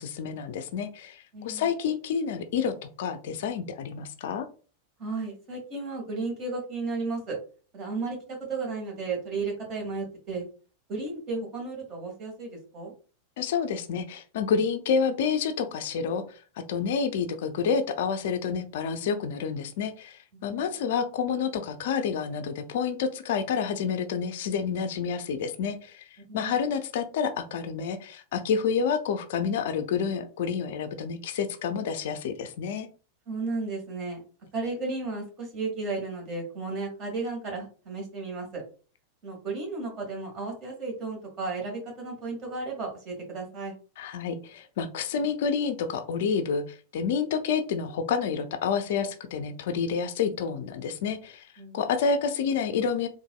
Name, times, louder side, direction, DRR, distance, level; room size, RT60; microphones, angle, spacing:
voice 1, 0.0-4.5 13.4-16.4 16.7-32.9 44.0-51.5 51.7-53.1, left 6 dB, 55° left, 8 dB, 0.4 m, -29 dB
voice 2, 1.3-1.6 5.0-7.4 7.7-10.4 10.9-12.9 20.3-20.7 26.3-26.5 33.3-34.2 34.5-38.6 39.2-43.7 51.6-51.8, right 3 dB, 35° right, 0 dB, 1.6 m, -34 dB
3.9 x 2.5 x 2.3 m, 0.38 s
figure-of-eight pair, 90°, 0 cm